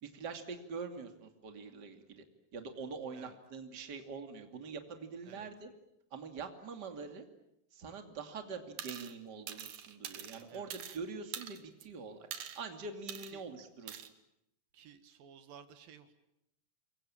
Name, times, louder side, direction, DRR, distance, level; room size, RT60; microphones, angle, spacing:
voice 1, 0.0-2.2 2.5-5.7 6.1-7.2 7.7-12.3 12.6-14.1, right 4 dB, 30° right, 5 dB, 2.8 m, -44 dB
sound 1, 8.8-9.1 9.5-11.0 11.3-11.8 12.3-12.6 13.1-13.3 13.9-14.1, right 9 dB, 60° right, 2.5 m, -44 dB
voice 2, 14.7-16.1, right 8 dB, 80° right, 9 dB, 3.3 m, -55 dB
29.0 x 23.0 x 8.9 m, 0.81 s
omnidirectional pair, 4.0 m